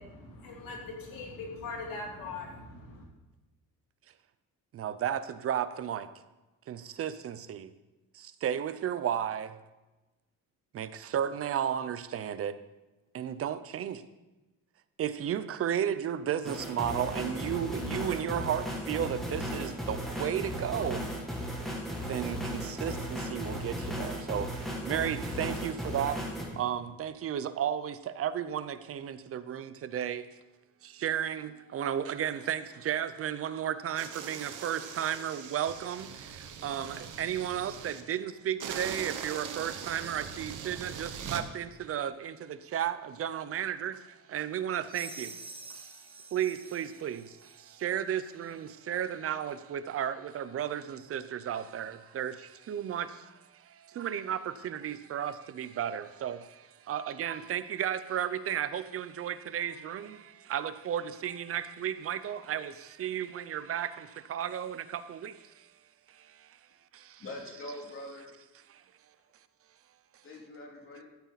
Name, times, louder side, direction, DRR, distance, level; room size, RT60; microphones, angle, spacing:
voice 1, 0.0-3.1, left 3 dB, 75° left, 3.1 m, -41 dB
voice 2, 4.7-6.1 6.7-7.7 8.1-9.6 10.7-12.6 13.1-14.0 15.0-21.1 22.0-26.2 26.6-30.3 30.8-45.4 45.7-46.0 46.3-65.7 66.1-66.5 66.9-67.2 68.7-68.8, right 9 dB, 40° right, 0.5 m, -34 dB
sound 1, 16.4-26.5, equal, ahead, 2.1 m, -36 dB
sound 2, 33.9-38.0 38.6-41.4, right 7 dB, 60° right, 1.1 m, -41 dB
sound 3, 44.9-47.9, right 3 dB, 15° right, 0.8 m, -47 dB
voice 3, 67.2-68.3 70.2-71.0, left 1 dB, 40° left, 2.4 m, -43 dB
13.5 x 8.2 x 4.0 m
cardioid pair, 150°, 34 cm